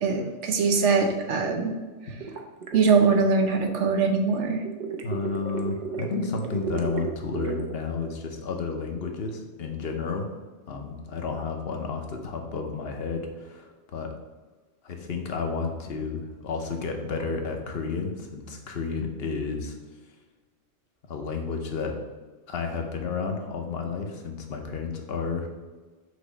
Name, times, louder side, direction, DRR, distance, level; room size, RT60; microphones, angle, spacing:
voice 1, 0.0-1.7 2.7-4.6, right 4 dB, 75° right, 5 dB, 1.0 m, -22 dB
sound 1, 2.2-4.0 4.6-7.8, right 6 dB, 45° right, 0.6 m, -33 dB
voice 2, 5.0-10.3 10.7-14.1 14.8-19.8 21.1-21.9 22.5-25.5, left 4 dB, 60° left, 3 dB, 1.0 m, -31 dB
6.3 x 3.1 x 4.9 m, 1.3 s
omnidirectional pair, 1.2 m